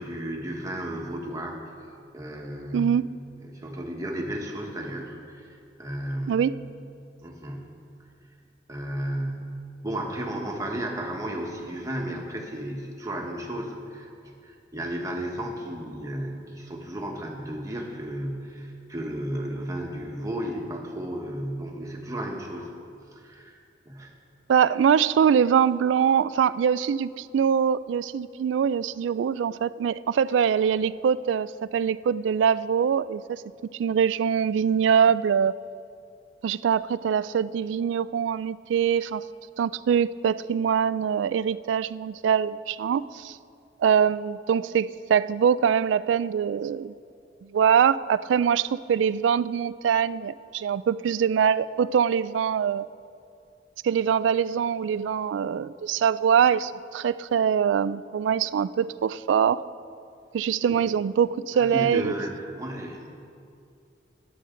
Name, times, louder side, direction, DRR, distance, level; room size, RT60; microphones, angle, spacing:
voice 1, 0.0-1.6 2.1-3.0 3.4-6.5 7.2-7.8 8.7-9.5 9.8-22.7 23.1-23.6 23.8-24.1 60.7-60.8 61.5-63.1, right 1 dB, 20° right, 0 dB, 1.4 m, -33 dB
voice 2, 24.5-33.2 33.7-35.5 36.4-39.2 39.6-43.4 43.8-46.9 47.4-52.9 53.8-59.6 60.3-62.1, right 7 dB, 80° right, 17 dB, 0.3 m, -23 dB
21.0 x 7.9 x 3.8 m, 2.4 s
head